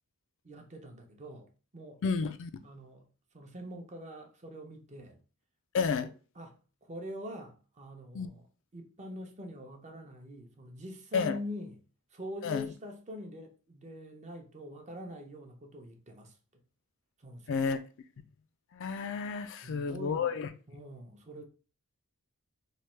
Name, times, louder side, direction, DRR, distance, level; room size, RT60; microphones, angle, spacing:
voice 1, 0.4-2.2 2.6-3.0 3.3-5.2 6.0-6.1 6.4-8.5 8.7-11.8 12.1-16.6 17.2-17.7 19.6-20.3 20.7-21.4, equal, 30° right, 0.7 m, -44 dB
voice 2, 2.0-2.5 5.7-6.1 8.1-8.3 11.1-11.4 12.4-12.7 17.5-17.8 18.7-20.5, left 5 dB, 60° left, 0.4 m, -31 dB
3.1 x 2.3 x 4.3 m
head